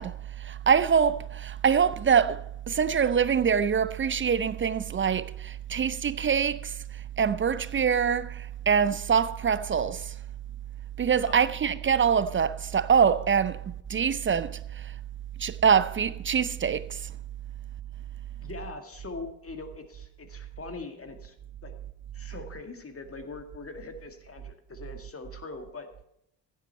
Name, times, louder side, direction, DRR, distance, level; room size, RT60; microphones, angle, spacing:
voice 1, 0.0-10.1 11.0-13.6 13.9-14.9 15.4-17.1, right 7 dB, 25° right, 0.5 m, -25 dB
voice 2, 18.4-21.4 21.6-21.7 22.1-25.9, left 3 dB, 30° left, 1.9 m, -42 dB
15.0 x 7.9 x 4.3 m
hypercardioid pair, 45°, 49 cm